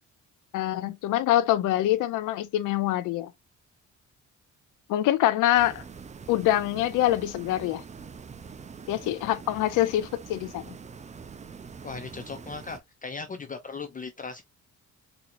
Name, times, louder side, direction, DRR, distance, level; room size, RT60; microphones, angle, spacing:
voice 1, 0.5-3.3 4.9-5.8 6.3-7.8 8.9-10.7, left 13 dB, 85° left, 0.5 m, -25 dB
sound 1, 5.5-12.8, right 5 dB, 25° right, 0.5 m, -44 dB
voice 2, 11.8-14.4, left 4 dB, 25° left, 0.5 m, -38 dB
4.1 x 2.8 x 2.5 m
cardioid pair, 90°, 30 cm